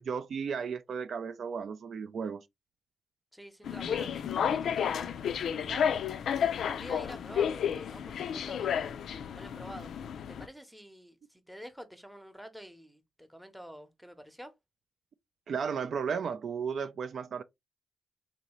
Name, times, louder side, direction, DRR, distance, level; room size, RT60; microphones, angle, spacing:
voice 1, 0.0-2.5 15.5-17.4, right 6 dB, 60° right, 0.3 m, -34 dB
voice 2, 3.3-6.0 6.3-8.9 9.3-9.9 10.3-14.6, equal, ahead, 0.7 m, -48 dB
sound 1, 3.6-10.5, left 8 dB, 85° left, 0.3 m, -32 dB
3.8 x 2.6 x 2.9 m
wide cardioid pair, 120°, 0 cm